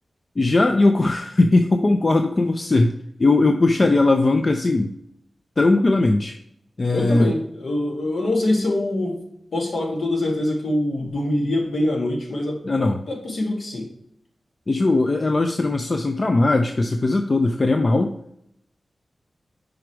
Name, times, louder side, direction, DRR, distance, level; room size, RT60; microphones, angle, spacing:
voice 1, 0.4-4.9 5.6-6.4 6.8-7.3 12.6-13.0 14.7-18.1, left 2 dB, 35° left, 6 dB, 0.4 m, -19 dB
voice 2, 6.9-9.2 9.5-13.9, left 1 dB, 65° left, 0 dB, 1.6 m, -24 dB
5.0 x 4.8 x 4.5 m, 0.76 s
wide cardioid pair, 115°, 0 cm